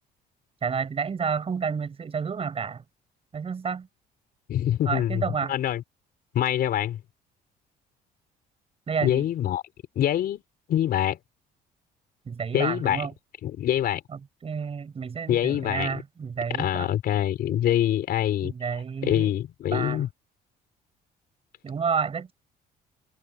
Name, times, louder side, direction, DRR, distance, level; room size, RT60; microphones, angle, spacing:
voice 1, 0.6-2.8 3.3-3.9 4.9-5.5 8.9-9.3 12.3-13.1 14.1-16.9 18.4-19.3 19.7-20.0 21.6-22.3, right 6 dB, 35° right, 7.6 m, -30 dB
voice 2, 4.5-5.2 5.5-5.8 6.3-7.0 9.0-9.6 9.9-10.4 10.7-11.2 12.5-13.1 13.4-14.0 15.3-15.9 16.6-18.5 19.0-20.1, left 11 dB, 65° left, 4.8 m, -25 dB
cardioid pair, 110°, 17 cm